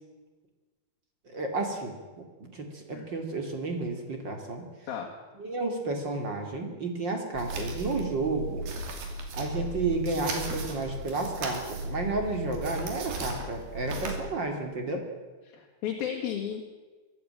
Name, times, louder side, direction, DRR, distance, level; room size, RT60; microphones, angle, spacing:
voice 1, 1.2-2.0 2.4-4.6 5.4-8.6 9.3-15.1, right 3 dB, 35° right, 4 dB, 2.5 m, -32 dB
sound 1, 7.3-14.2, right 2 dB, 70° right, 4.5 m, -36 dB
voice 2, 15.5-16.6, left 9 dB, 70° left, 1 dB, 3.5 m, -34 dB
23.0 x 13.0 x 8.8 m, 1.3 s
omnidirectional pair, 4.6 m